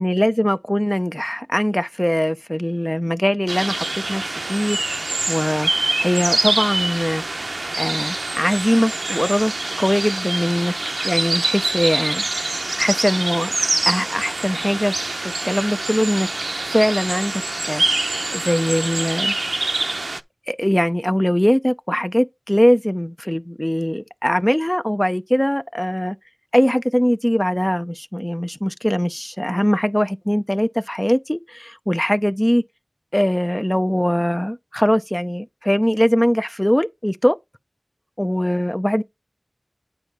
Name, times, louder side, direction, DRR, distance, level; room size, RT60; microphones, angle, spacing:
voice 1, 0.0-4.2 4.5-5.0 5.3-7.4 7.8-9.5 9.8-13.5 13.9-14.9 15.2-16.3 16.7-19.4 20.5-26.2 26.5-32.6 33.1-37.4 38.2-39.0, equal, 15° left, 0.5 m, -21 dB
sound 1, 3.5-20.2, right 2 dB, 90° right, 0.6 m, -25 dB
8.9 x 4.4 x 5.0 m
wide cardioid pair, 45°, 0 cm